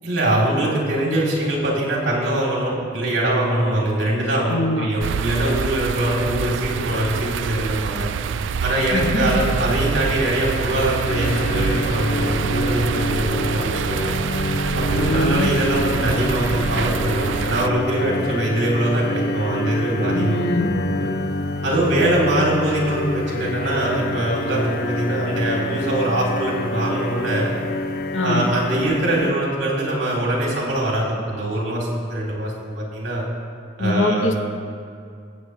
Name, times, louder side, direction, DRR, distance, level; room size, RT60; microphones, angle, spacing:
voice 1, 0.0-8.1 8.6-14.1 14.7-20.4 20.7-21.1 21.6-27.5 28.2-33.3 33.8-34.3, right 1 dB, 65° right, -3 dB, 3.3 m, -22 dB
voice 2, 4.5-4.9 8.9-9.4 14.9-15.5 20.1-20.7 28.1-28.5 33.8-34.4, left 2 dB, 85° left, 3 dB, 1.1 m, -23 dB
sound 1, 5.0-17.7, right 6 dB, 80° right, 0.4 m, -26 dB
sound 2, 11.0-29.3, left 1 dB, 55° left, 0.6 m, -27 dB
21.5 x 8.1 x 3.2 m, 2.3 s
head